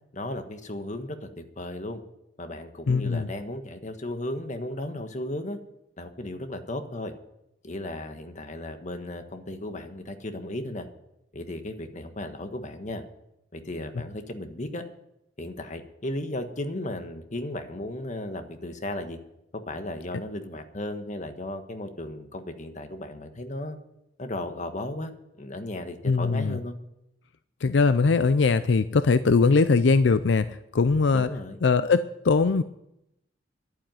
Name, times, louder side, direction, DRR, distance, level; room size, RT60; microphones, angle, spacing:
voice 1, 0.1-2.0 2.4-5.6 6.0-7.1 7.6-10.9 11.3-13.0 13.5-14.8 15.4-19.2 19.5-23.8 24.2-25.1 25.4-26.8 31.1-31.6, left 1 dB, 40° left, 7 dB, 1.4 m, -35 dB
voice 2, 2.9-3.3 26.0-26.6 27.6-31.3 31.6-32.6, left 4 dB, 80° left, 13 dB, 0.5 m, -21 dB
11.5 x 9.0 x 9.3 m, 0.83 s
head